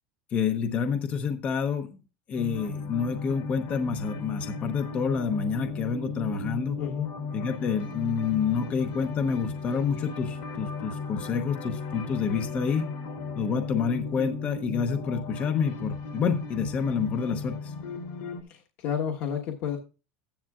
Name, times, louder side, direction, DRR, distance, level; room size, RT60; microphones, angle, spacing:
voice 1, 0.3-2.0 2.3-6.8 7.3-12.9 13.4-17.7, left 6 dB, 20° left, 8 dB, 0.7 m, -28 dB
sound 1, 2.3-18.4, left 4 dB, 65° left, 2.9 m, -36 dB
voice 2, 6.8-7.2 18.5-19.8, left 8 dB, 40° left, 1 dB, 1.2 m, -31 dB
14.0 x 10.5 x 2.4 m, 0.31 s
supercardioid pair, 180°, 6 cm